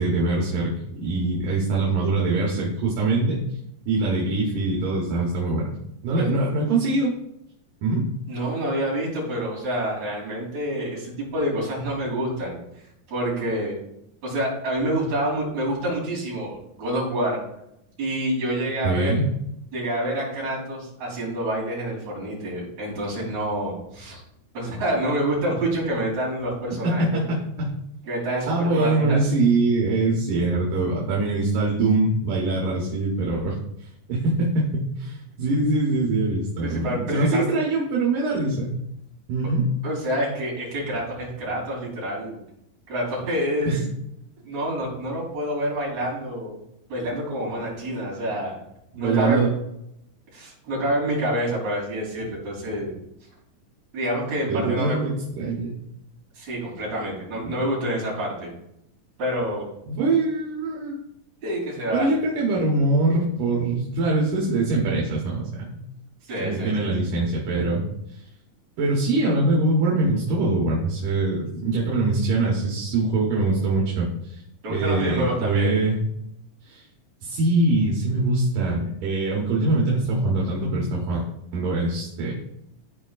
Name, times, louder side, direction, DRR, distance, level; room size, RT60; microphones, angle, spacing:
voice 1, 0.0-3.4 3.9-5.7 6.0-7.1 7.8-8.1 18.8-19.2 26.8-27.7 28.5-33.6 34.1-38.7 39.3-39.7 43.6-43.8 48.9-49.5 54.5-55.8 57.4-57.5 59.9-60.9 61.9-65.8 66.4-67.9 68.8-74.4 74.7-76.0 76.6-76.8 77.2-81.2 81.5-82.3, right 2 dB, 75° right, -3 dB, 2.8 m, -23 dB
voice 2, 8.3-12.6 13.1-13.8 14.2-17.4 18.0-19.1 19.7-24.2 24.5-27.2 28.1-29.4 36.6-37.5 39.8-42.4 42.9-43.7 44.4-46.6 46.9-48.6 49.0-49.5 50.3-52.9 53.9-55.1 56.3-58.5 59.2-59.6 61.4-62.1 66.2-66.9 74.6-75.8, right 1 dB, 55° right, -5 dB, 4.4 m, -27 dB
14.0 x 5.0 x 2.4 m, 0.79 s
omnidirectional pair, 3.8 m